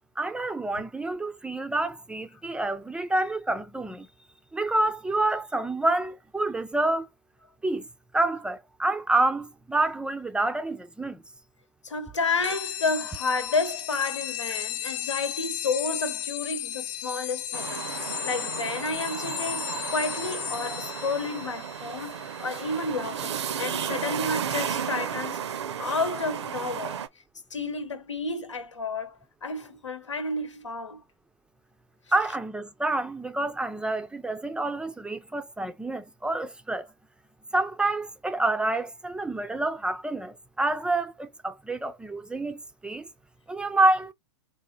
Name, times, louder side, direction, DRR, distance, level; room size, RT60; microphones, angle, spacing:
voice 1, 0.2-4.1 4.5-7.1 7.6-7.9 8.1-11.2 32.1-36.9 37.5-43.0 43.5-44.1, right 2 dB, 5° right, 0.4 m, -28 dB
voice 2, 11.8-25.4 25.8-27.0 27.5-31.0, left 3 dB, 85° left, 1.0 m, -31 dB
sound 1, 12.4-24.5, left 12 dB, 45° left, 0.6 m, -36 dB
sound 2, 17.5-27.1, right 8 dB, 70° right, 0.6 m, -33 dB
3.5 x 2.7 x 3.9 m
hypercardioid pair, 105°, 15 cm